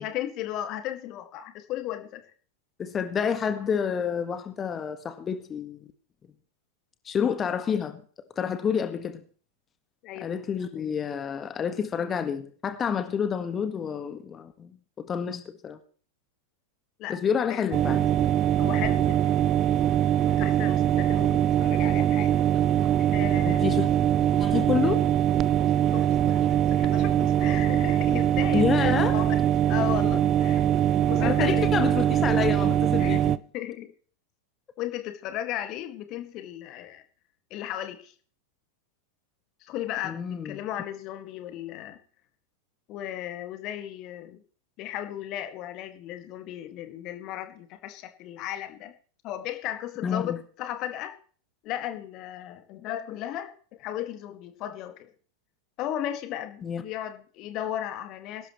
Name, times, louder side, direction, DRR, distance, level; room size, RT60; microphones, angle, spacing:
voice 1, 0.0-2.2 10.0-10.3 17.0-17.2 17.5-17.6 18.6-19.3 19.7-19.9 20.3-22.3 23.1-23.8 25.9-29.4 29.7-30.7 31.0-31.7 33.0-33.2 33.5-33.9 34.8-37.0 37.5-38.1 39.7-42.0 42.9-44.4 44.8-48.9 49.2-51.1 51.6-55.1 55.8-58.5, left 12 dB, 40° left, 8 dB, 2.0 m, -35 dB
voice 2, 2.8-5.9 7.0-8.0 8.3-9.2 10.2-14.7 15.0-15.8 17.1-18.1 23.4-23.9 24.4-25.0 28.5-29.2 31.2-33.3 40.0-40.6 50.0-50.4 56.6-56.8, left 7 dB, 25° left, 8 dB, 1.6 m, -28 dB
sound 1, 17.7-33.4, right 11 dB, 30° right, 0.6 m, -22 dB
21.0 x 12.0 x 3.2 m, 0.42 s
figure-of-eight pair, 90°, 0 cm